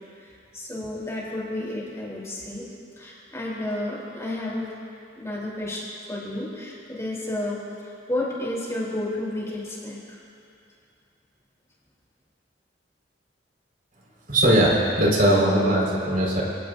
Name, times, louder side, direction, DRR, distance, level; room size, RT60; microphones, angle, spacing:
voice 1, 0.1-2.7 3.0-4.7 5.2-5.8 6.1-10.2, left 1 dB, 15° left, -5 dB, 3.6 m, -31 dB
voice 2, 14.3-16.4, right 1 dB, 50° right, -4 dB, 4.9 m, -20 dB
28.0 x 18.5 x 2.7 m, 2.5 s
head